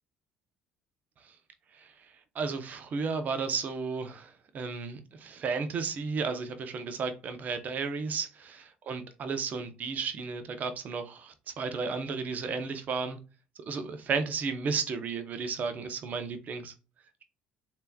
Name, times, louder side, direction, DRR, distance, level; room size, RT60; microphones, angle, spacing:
voice 1, 2.3-13.2 13.7-16.7, right 5 dB, 50° right, 0.8 m, -33 dB
3.4 x 2.9 x 2.3 m
supercardioid pair, 85°, 4 cm